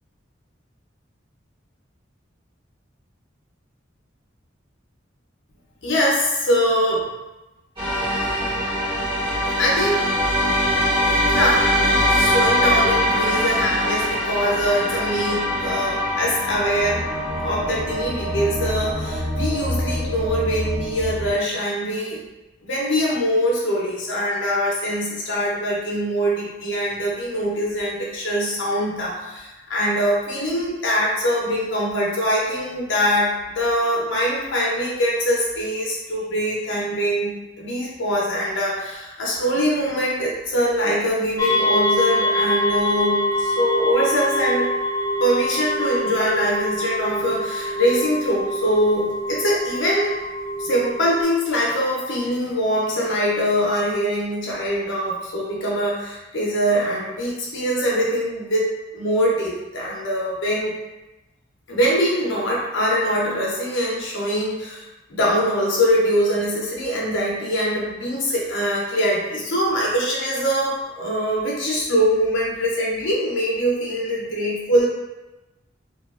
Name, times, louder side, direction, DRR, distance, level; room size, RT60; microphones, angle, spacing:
voice 1, 5.8-7.1 9.6-10.1 11.3-11.6 12.1-17.0 17.4-22.2 22.6-44.7 45.2-50.1 50.6-60.8 61.7-64.8 65.1-74.9, equal, 70° left, -4 dB, 0.6 m, -23 dB
sound 1, 7.8-21.3, equal, 25° right, 1.2 m, -23 dB
sound 2, 41.4-51.2, equal, 15° left, 0.5 m, -24 dB
2.8 x 2.3 x 2.3 m, 1.0 s
head